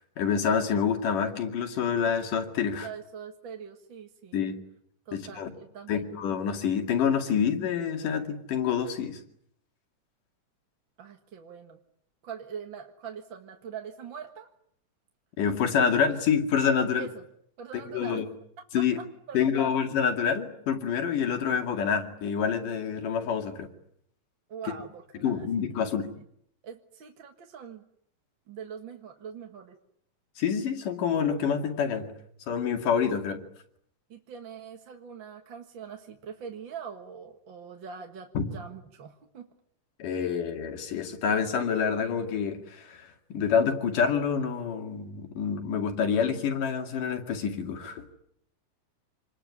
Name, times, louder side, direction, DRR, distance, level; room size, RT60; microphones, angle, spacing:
voice 1, 0.2-2.9 4.3-4.6 5.1-5.5 5.9-9.2 15.4-17.1 17.9-18.3 18.7-19.0 19.3-23.7 25.2-26.1 30.4-32.1 32.5-33.4 38.3-38.5 40.0-48.0, left 7 dB, 70° left, 5 dB, 3.9 m, -27 dB
voice 2, 2.8-4.4 5.1-6.2 11.0-11.8 12.2-14.5 17.0-17.2 17.6-18.2 18.6-19.7 24.5-25.6 26.1-26.2 26.6-27.8 28.5-29.8 34.1-39.5, right 7 dB, 45° right, 4 dB, 1.9 m, -43 dB
27.5 x 21.0 x 9.8 m, 0.72 s
omnidirectional pair, 3.8 m